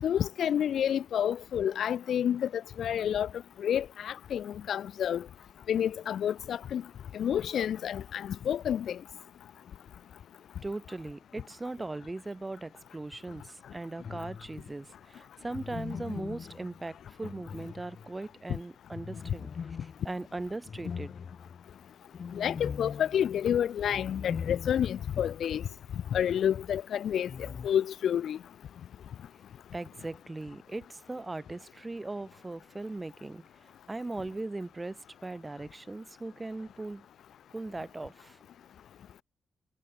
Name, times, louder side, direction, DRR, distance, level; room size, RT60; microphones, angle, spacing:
voice 1, 0.0-3.3 3.6-5.2 5.7-6.8 7.1-9.0 22.3-25.6 26.1-28.4, left 9 dB, 60° left, 0.6 m, -29 dB
voice 2, 10.6-21.1 29.7-37.1 37.5-38.4, right 2 dB, 15° right, 2.4 m, -39 dB
sound 1, 14.0-14.7 15.5-18.3 18.9-25.1 25.4-25.5 27.3-27.7, left 6 dB, 40° left, 3.7 m, -41 dB
wide cardioid pair, 165°, 0 cm